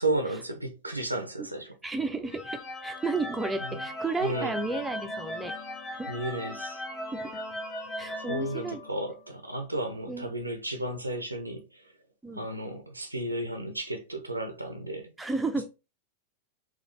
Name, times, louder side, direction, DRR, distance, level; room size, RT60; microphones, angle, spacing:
voice 1, 0.0-1.7 3.7-3.8 4.2-4.5 6.1-6.8 8.2-11.9 12.3-15.1, right 1 dB, 85° right, 0.6 m, -33 dB
voice 2, 1.8-5.5 5.9-6.1 7.1-7.4 8.0-8.8 10.1-10.4 12.2-12.4 15.2-15.6, right 3 dB, 10° right, 0.7 m, -33 dB
sound 1, 2.3-9.3, left 1 dB, 20° left, 1.2 m, -38 dB
4.0 x 3.1 x 3.2 m
figure-of-eight pair, 90°, 0 cm